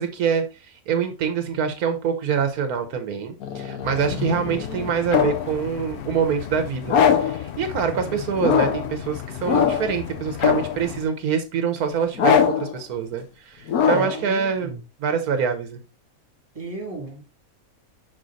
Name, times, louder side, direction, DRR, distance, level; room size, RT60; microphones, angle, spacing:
voice 1, 0.0-14.7 15.0-15.8, right 6 dB, 80° right, 1.3 m, -25 dB
sound 1, 3.4-5.5 6.9-7.4 8.4-8.9 9.4-10.0 10.4-10.9 12.2-12.7 13.7-14.2, left 7 dB, 80° left, 1.3 m, -21 dB
sound 2, 3.8-11.1, left 10 dB, 60° left, 0.7 m, -36 dB
voice 2, 4.1-4.4 7.9-8.3 13.8-14.8 16.5-17.2, right 1 dB, 25° right, 2.6 m, -33 dB
6.3 x 4.1 x 3.9 m
omnidirectional pair, 1.5 m